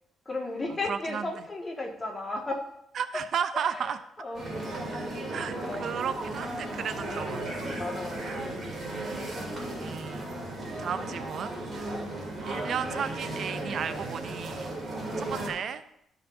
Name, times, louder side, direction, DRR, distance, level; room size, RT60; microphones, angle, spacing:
voice 1, 0.2-2.6 3.5-3.9 4.2-4.5 5.6-5.9 7.8-9.0 11.8-12.1 15.1-15.3, left 2 dB, 25° left, 1 dB, 1.7 m, -35 dB
voice 2, 0.9-1.3 2.9-4.0 5.3-7.5 8.2-8.5 9.8-10.3 10.8-12.0 12.5-14.7 15.2-15.8, right 7 dB, 60° right, 12 dB, 0.5 m, -34 dB
sound 1, 4.3-15.5, right 1 dB, 35° right, 2.8 m, -35 dB
13.0 x 5.7 x 2.6 m, 0.76 s
cardioid pair, 90°, 0 cm